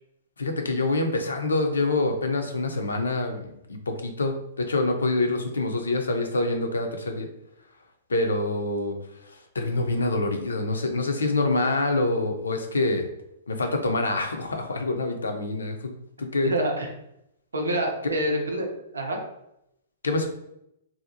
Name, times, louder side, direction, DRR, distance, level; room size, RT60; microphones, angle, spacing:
voice 1, 0.4-7.3 8.1-9.0 9.5-13.1 13.5-15.9 16.2-16.5 20.0-20.3, left 2 dB, 85° left, 5 dB, 0.4 m, -26 dB
voice 2, 16.4-16.9 17.5-19.2, right 1 dB, 90° right, 2 dB, 0.6 m, -27 dB
2.6 x 2.0 x 2.7 m, 0.81 s
hypercardioid pair, 120°, 0 cm